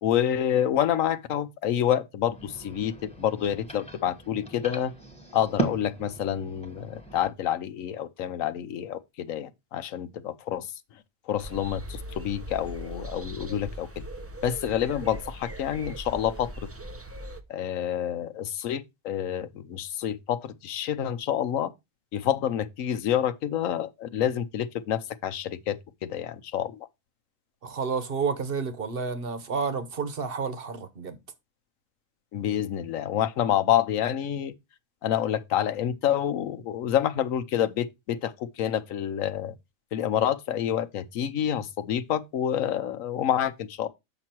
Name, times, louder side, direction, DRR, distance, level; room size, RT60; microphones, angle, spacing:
voice 1, 0.0-4.9 5.3-10.7 11.3-14.0 14.4-16.5 17.5-21.7 22.1-26.9 32.3-34.5 35.0-39.6 39.9-43.9, left 10 dB, 80° left, 1.1 m, -28 dB
sound 1, 2.2-7.3, right 3 dB, 5° left, 1.3 m, -37 dB
sound 2, 11.4-17.4, right 1 dB, 20° right, 0.4 m, -40 dB
voice 2, 27.6-31.2, right 5 dB, 45° right, 1.1 m, -30 dB
7.5 x 6.0 x 4.4 m
omnidirectional pair, 1.4 m